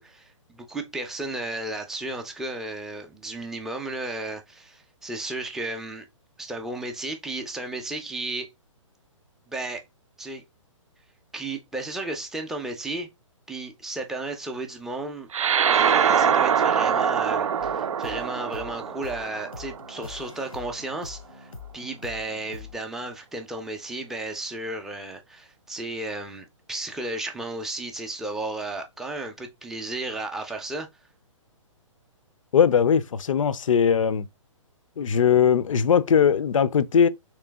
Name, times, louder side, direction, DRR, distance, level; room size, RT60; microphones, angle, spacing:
voice 1, 0.0-6.1 6.4-8.5 9.5-9.8 10.2-10.4 11.3-13.1 13.5-15.3 15.7-30.9, right 2 dB, ahead, 0.4 m, -34 dB
sound 1, 15.3-20.1, right 7 dB, 70° right, 0.4 m, -23 dB
sound 2, 17.6-22.8, left 5 dB, 90° left, 0.8 m, -44 dB
voice 2, 32.5-34.2 35.0-37.1, left 7 dB, 70° left, 0.4 m, -20 dB
3.2 x 3.1 x 3.3 m
figure-of-eight pair, 130°, 17 cm